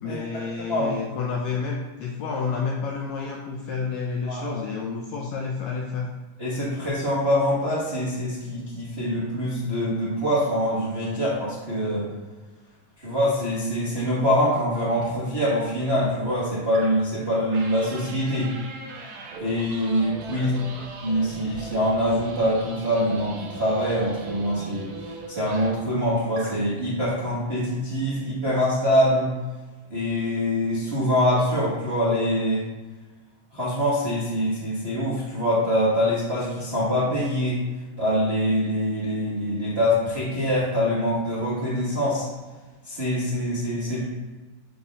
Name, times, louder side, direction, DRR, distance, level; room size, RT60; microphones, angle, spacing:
voice 1, 0.0-6.1 20.3-20.8, left 5 dB, 90° left, -1 dB, 1.6 m, -30 dB
voice 2, 4.2-4.6 6.4-12.1 13.0-18.5 19.4-24.9 25.3-29.3 29.9-32.6 33.5-37.6 38.0-42.2 42.8-44.0, equal, 50° right, -9 dB, 0.7 m, -24 dB
sound 1, 14.9-15.1 16.7-17.1 17.5-25.9 26.3-26.6, right 3 dB, 70° right, 1.8 m, -40 dB
10.5 x 4.2 x 2.4 m, 1.3 s
omnidirectional pair, 3.8 m